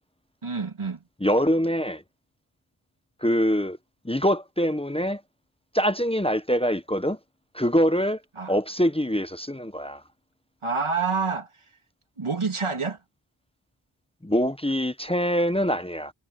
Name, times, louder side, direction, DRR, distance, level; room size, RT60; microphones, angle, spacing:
voice 1, 0.4-1.0 8.4-8.5 10.6-11.5 12.2-13.0, right 4 dB, 85° right, 2.8 m, -27 dB
voice 2, 1.2-2.0 3.2-3.8 4.0-5.2 5.7-7.2 7.5-8.2 8.5-10.0 14.2-16.1, equal, 10° left, 0.8 m, -24 dB
wide cardioid pair, 45°, 48 cm